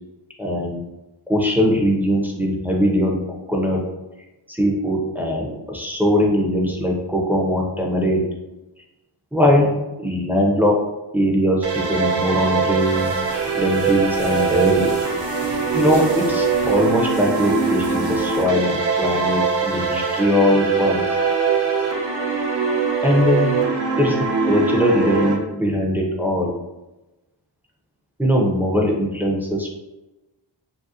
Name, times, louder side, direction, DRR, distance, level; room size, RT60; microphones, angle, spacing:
voice 1, 0.4-0.8 1.3-3.2 3.5-3.8 4.5-8.3 9.3-10.8 11.1-13.1 13.5-14.9 15.7-21.1 23.0-23.6 24.0-26.5 28.2-29.8, equal, 5° right, -2 dB, 0.5 m, -20 dB
sound 1, 11.6-25.3, right 5 dB, 65° right, 0.7 m, -22 dB
sound 2, 12.8-18.5, right 2 dB, 90° right, 0.9 m, -37 dB
2.9 x 2.4 x 2.7 m, 1.0 s
wide cardioid pair, 105°, 46 cm